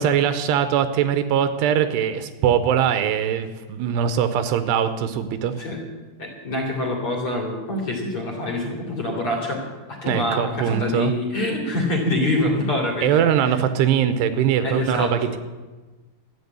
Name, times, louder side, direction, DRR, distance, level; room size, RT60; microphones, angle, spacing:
voice 1, 0.0-5.5 10.1-11.1 13.0-15.4, right 9 dB, 80° right, 11 dB, 2.8 m, -21 dB
voice 2, 6.2-9.6 10.0-13.2 14.6-15.3, left 1 dB, 35° left, 1 dB, 2.8 m, -25 dB
13.5 x 8.7 x 9.3 m, 1.2 s
omnidirectional pair, 5.0 m